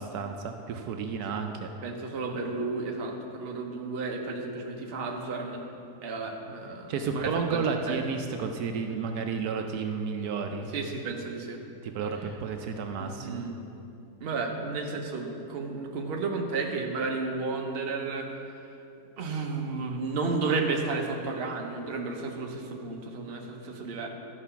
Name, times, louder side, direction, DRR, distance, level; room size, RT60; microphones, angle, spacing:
voice 1, 0.0-1.7 6.9-10.7 11.8-13.5, right 5 dB, 75° right, 5 dB, 1.1 m, -32 dB
voice 2, 1.8-5.6 6.0-8.0 10.7-11.6 13.0-13.5 14.2-18.3 19.2-24.1, right 3 dB, 45° right, 1 dB, 1.0 m, -32 dB
12.0 x 4.9 x 5.7 m, 2.8 s
omnidirectional pair, 1.7 m